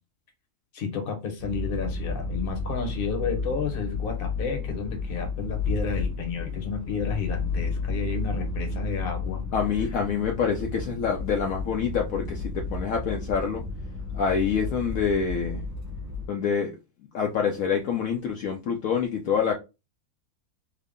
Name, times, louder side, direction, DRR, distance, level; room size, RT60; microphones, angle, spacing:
voice 1, 0.7-9.4, left 6 dB, 40° left, 1.0 m, -31 dB
sound 1, 1.4-16.3, left 3 dB, 15° right, 0.6 m, -32 dB
voice 2, 9.5-13.6 14.1-15.6 16.3-16.7 17.1-19.5, left 6 dB, 70° left, 1.0 m, -26 dB
3.5 x 2.1 x 3.6 m
omnidirectional pair, 1.6 m